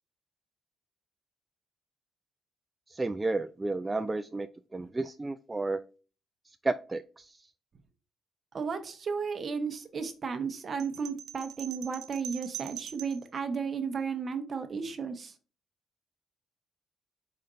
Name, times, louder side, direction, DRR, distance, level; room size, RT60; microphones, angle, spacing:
voice 1, 2.9-4.5 4.7-5.8 6.6-7.3, right 2 dB, 20° right, 9 dB, 0.3 m, -32 dB
voice 2, 8.5-15.3, right 5 dB, 45° right, 8 dB, 0.9 m, -34 dB
sound 1, 10.8-13.3, right 11 dB, 80° right, 0.6 m, -43 dB
4.9 x 4.2 x 2.5 m, 0.36 s
cardioid pair, 90°, 0 cm